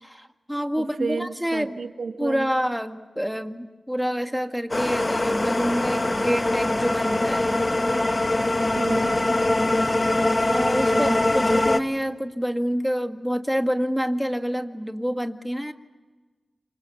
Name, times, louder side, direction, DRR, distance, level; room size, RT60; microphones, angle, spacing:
voice 1, 0.0-1.8 2.2-7.7 10.5-15.7, equal, ahead, 6 dB, 1.9 m, -27 dB
voice 2, 0.7-2.5 7.5-7.6 8.7-9.4 10.9-11.2, right 4 dB, 90° right, 7 dB, 1.4 m, -32 dB
sound 1, 4.7-11.8, left 2 dB, 35° left, 1.3 m, -22 dB
26.5 x 25.5 x 7.1 m, 1.3 s
cardioid pair, 50°, 0 cm